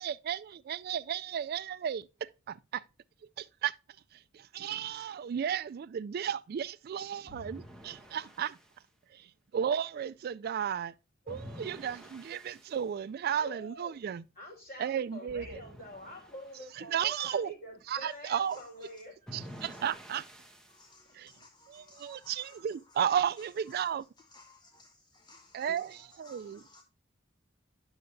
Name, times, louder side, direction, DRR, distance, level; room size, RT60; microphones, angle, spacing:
voice 1, 0.0-2.0 3.4-3.7 4.3-8.6 9.1-9.3 9.5-10.9 11.3-14.2 14.8-15.6 16.8-17.5 17.9-18.6 19.3-20.2 21.1-21.3 21.7-24.0 25.5-26.6, right 8 dB, 50° right, 0.3 m, -34 dB
sound 1, 7.3-8.7 11.3-12.8 15.3-16.6 19.3-20.8, equal, 5° left, 1.0 m, -49 dB
voice 2, 13.4-14.0 14.3-19.5, left 1 dB, 50° left, 5.0 m, -47 dB
voice 3, 18.5-18.9 19.6-19.8 20.7-23.9 24.2-24.7 25.2-26.8, left 2 dB, 20° left, 0.7 m, -57 dB
9.6 x 6.4 x 2.6 m
head